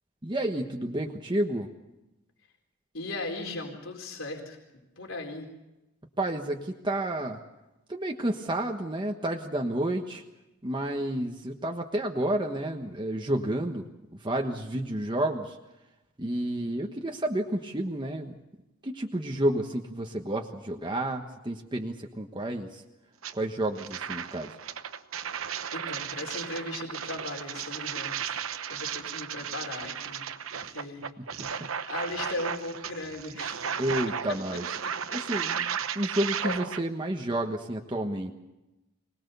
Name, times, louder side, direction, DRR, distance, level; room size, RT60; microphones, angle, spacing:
voice 1, 0.2-1.7 6.2-7.4 7.9-10.2 10.6-13.9 14.1-15.6 16.2-18.4 18.8-22.8 23.3-24.5 30.6-30.7 31.2-31.7 33.8-34.6 35.1-38.3, right 1 dB, 25° right, 2 dB, 1.3 m, -30 dB
voice 2, 2.9-4.6 5.0-5.5 25.7-28.4 28.7-30.3 30.5-33.6 36.4-36.5, left 2 dB, 75° left, 2 dB, 4.2 m, -37 dB
sound 1, 23.2-23.3 23.7-36.8, right 7 dB, 85° right, 1.0 m, -35 dB
25.0 x 20.0 x 6.9 m, 0.98 s
head